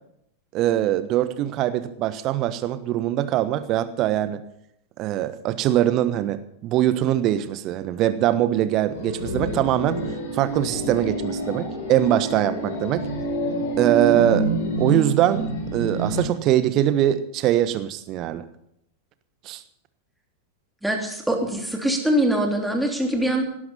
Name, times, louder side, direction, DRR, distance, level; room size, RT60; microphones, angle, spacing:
voice 1, 0.5-4.4 5.0-10.0 10.3-13.1 13.8-14.5 14.8-18.4 19.4-19.6, right 12 dB, 35° right, 13 dB, 1.2 m, -22 dB
sound 1, 8.9-16.2, right 1 dB, 55° left, 4.2 m, -27 dB
voice 2, 20.8-23.4, right 1 dB, 5° right, 2 dB, 3.1 m, -23 dB
18.0 x 11.5 x 5.6 m, 0.75 s
figure-of-eight pair, 90°, 0 cm